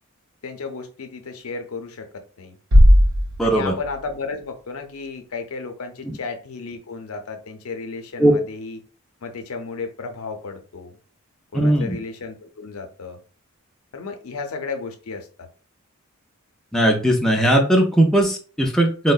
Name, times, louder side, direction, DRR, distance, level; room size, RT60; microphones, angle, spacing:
voice 1, 0.4-2.6 3.4-8.8 9.2-11.0 11.5-13.2 13.9-15.5, left 4 dB, 80° left, 6 dB, 0.6 m, -33 dB
Bass drum, 2.7-4.4, equal, 65° right, 0.6 m, -16 dB
voice 2, 3.4-3.7 6.1-6.2 8.2-8.3 11.5-12.0 16.7-19.1, right 1 dB, ahead, 0 dB, 0.4 m, -18 dB
3.5 x 2.1 x 2.3 m, 0.37 s
head